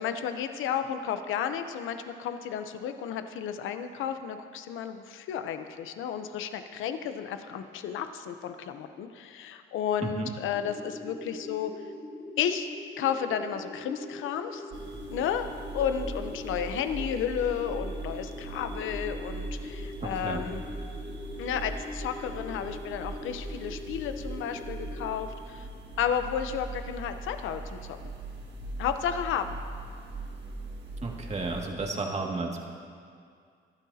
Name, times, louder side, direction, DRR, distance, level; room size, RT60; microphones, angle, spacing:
voice 1, 0.0-11.7 12.4-12.7 13.0-14.6 15.1-15.5 15.7-20.6 21.4-25.7 26.0-28.1 28.8-29.6, left 8 dB, 85° left, 8 dB, 0.8 m, -32 dB
sound 1, 10.5-25.1, left 2 dB, 30° left, 4.2 m, -42 dB
sound 2, 14.7-31.7, right 2 dB, 60° right, 1.8 m, -40 dB
voice 2, 20.0-20.5 31.0-32.7, right 3 dB, 35° right, 0 dB, 2.2 m, -33 dB
23.5 x 12.0 x 2.8 m, 2.2 s
cardioid pair, 90°, 20 cm